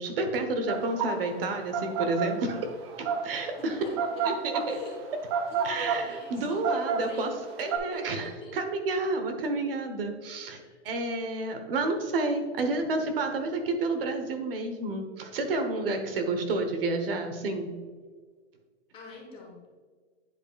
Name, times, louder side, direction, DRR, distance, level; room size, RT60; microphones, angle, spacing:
voice 1, 0.0-2.7 3.0-3.8 4.2-4.8 5.6-7.3 7.6-10.6 10.8-17.7, right 2 dB, 50° right, 6 dB, 1.1 m, -30 dB
sound 1, 0.7-7.8, right 6 dB, 25° right, 0.5 m, -30 dB
voice 2, 3.3-4.2 4.6-5.0 5.4-8.6 10.5-10.8 18.9-19.8, left 3 dB, 15° left, -2 dB, 1.1 m, -44 dB
9.8 x 5.0 x 2.3 m, 1.5 s
hypercardioid pair, 155°, 35 cm